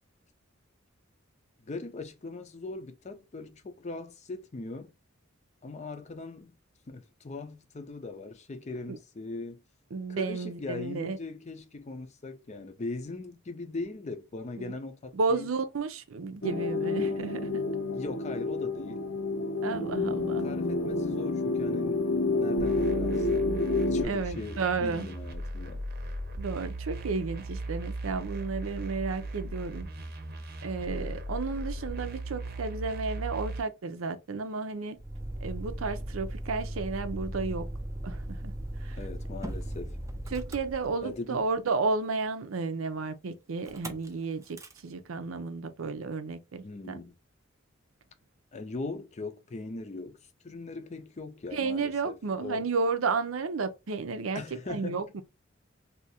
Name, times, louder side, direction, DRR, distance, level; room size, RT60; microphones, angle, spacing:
voice 1, 1.6-4.9 5.6-6.5 6.9-9.6 10.1-15.5 17.9-19.0 20.0-22.0 22.3-23.5 23.9-25.8 39.0-40.0 41.0-41.4 46.6-47.1 48.5-50.2 50.4-52.7 54.3-55.0, left 3 dB, 35° left, 0.5 m, -40 dB
voice 2, 9.9-11.2 14.6-14.7 15.1-17.6 19.6-20.5 24.0-25.1 26.3-29.9 30.6-35.0 35.4-37.7 38.0-39.0 40.3-47.0 51.5-55.2, right 4 dB, 90° right, 0.6 m, -32 dB
sound 1, 16.4-24.0, left 3 dB, 80° left, 0.7 m, -29 dB
sound 2, 22.6-33.6, right 2 dB, 50° right, 0.7 m, -37 dB
Motor vehicle (road), 35.0-41.4 43.6-44.1 44.4-44.8, right 1 dB, 15° right, 0.4 m, -38 dB
2.7 x 2.4 x 4.1 m
head